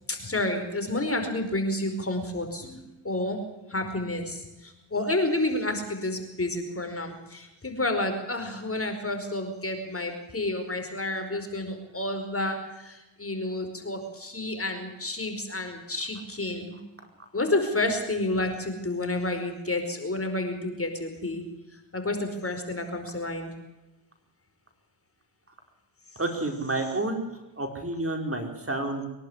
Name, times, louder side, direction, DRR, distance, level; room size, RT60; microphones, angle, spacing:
voice 1, 0.0-3.4 3.7-16.8 17.3-21.4 21.7-23.5, left 2 dB, 30° left, 6 dB, 4.9 m, -30 dB
voice 2, 26.2-27.3 27.6-29.1, right 2 dB, 25° right, 3 dB, 4.8 m, -29 dB
23.5 x 11.5 x 9.9 m, 0.98 s
cardioid pair, 60°, 48 cm